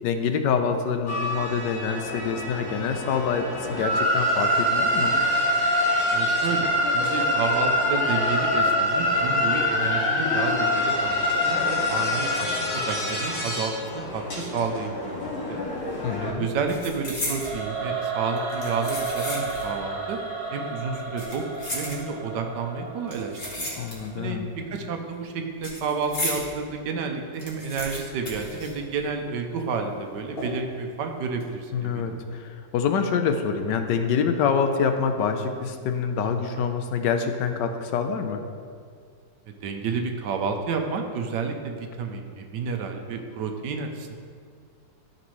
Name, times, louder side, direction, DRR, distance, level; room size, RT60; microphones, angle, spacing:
voice 1, 0.0-5.1 16.0-16.5 23.8-24.5 31.7-38.4, left 6 dB, 75° left, 7 dB, 1.2 m, -26 dB
sound 1, 1.1-16.3, left 1 dB, 55° left, 2.6 m, -25 dB
voice 2, 6.1-15.6 16.2-20.2 20.5-21.4 21.7-23.7 24.2-32.2 39.5-44.1, right 5 dB, 75° right, 4 dB, 1.3 m, -30 dB
sound 2, 15.6-15.9 16.2-17.6 18.4-19.8 20.1-20.2 21.0-22.4 23.1-24.3 24.5-26.5 26.9-27.0 27.2-29.3 29.6-29.7 30.4-30.8 31.2-31.4, left 1 dB, 35° left, 1.7 m, -34 dB
Singing / Musical instrument, 17.3-24.4, right 4 dB, 60° right, 1.6 m, -33 dB
13.0 x 5.2 x 3.2 m, 2.2 s
omnidirectional pair, 2.0 m